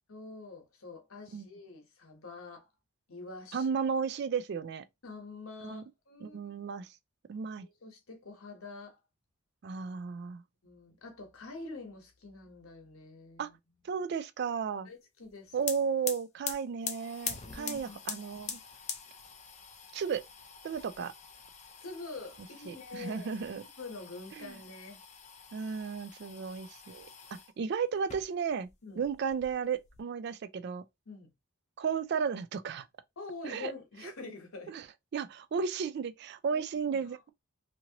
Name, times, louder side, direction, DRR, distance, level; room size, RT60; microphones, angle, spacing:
voice 1, 0.1-2.7 3.1-3.7 5.0-6.4 7.6-9.0 10.6-13.6 14.8-15.6 17.4-18.0 21.8-23.3 23.8-25.0 26.3-26.6 28.8-29.1 31.1-31.3 33.2-34.8 36.5-37.1, left 3 dB, 80° left, 1.0 m, -46 dB
voice 2, 3.5-4.8 5.6-5.8 6.2-6.9 7.3-7.7 9.6-10.4 13.4-13.5 13.8-14.9 15.5-18.6 19.9-20.2 20.6-21.1 22.7-23.6 24.4-24.6 25.5-28.7 29.0-30.8 31.8-32.9 33.4-33.7 34.7-34.8 35.1-37.3, right 6 dB, 50° right, 0.3 m, -34 dB
sound 1, 15.3-15.4 15.6-27.5 28.0-28.7 29.0-30.0, left 7 dB, 30° left, 0.5 m, -44 dB
2.9 x 2.6 x 2.8 m
head